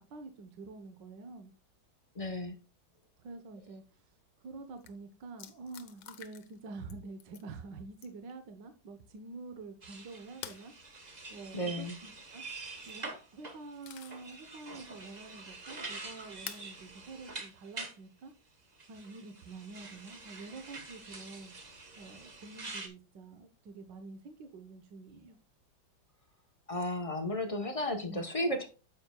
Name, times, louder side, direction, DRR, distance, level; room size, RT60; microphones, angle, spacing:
voice 1, 0.1-1.5 3.2-4.0 4.4-18.3 18.9-21.5 22.0-25.4 28.1-28.2, right 3 dB, 70° right, 1.6 m, -47 dB
voice 2, 2.1-2.6 11.5-12.0 26.7-28.7, left 1 dB, 30° left, 0.6 m, -33 dB
sound 1, 4.5-4.6 4.8-4.9 5.4-6.6 6.9-7.5 8.0-8.3 10.4-10.7 12.6-13.0 13.5-14.3 14.8-14.9 16.5-16.7 17.9-18.0 20.0-20.4, left 11 dB, 85° left, 1.6 m, -48 dB
sound 2, 9.8-18.0 18.8-22.9, right 3 dB, 25° right, 1.0 m, -46 dB
9.6 x 7.7 x 2.3 m
omnidirectional pair, 2.1 m